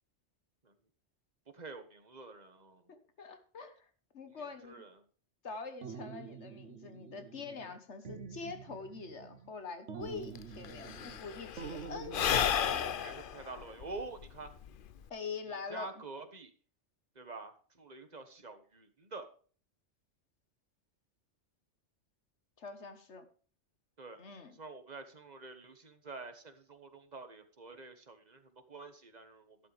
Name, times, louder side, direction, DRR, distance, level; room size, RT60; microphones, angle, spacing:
voice 1, 1.5-2.8 4.3-5.0 12.8-14.5 15.5-16.5 17.1-19.3 24.0-24.2 24.6-29.6, right 3 dB, 35° right, 8 dB, 1.5 m, -47 dB
voice 2, 2.9-3.9 4.1-4.9 5.4-13.0 15.1-16.0 22.6-23.2 24.2-24.5, left 4 dB, 70° left, 9 dB, 1.6 m, -44 dB
sound 1, 5.8-7.8 8.0-9.5 9.9-11.2 11.6-12.9, right 6 dB, 75° right, 1.4 m, -47 dB
Sigh / Breathing, 10.1-10.2 10.4-15.1, left 8 dB, 55° left, 0.7 m, -33 dB
12.0 x 11.5 x 3.4 m, 0.41 s
omnidirectional pair, 1.2 m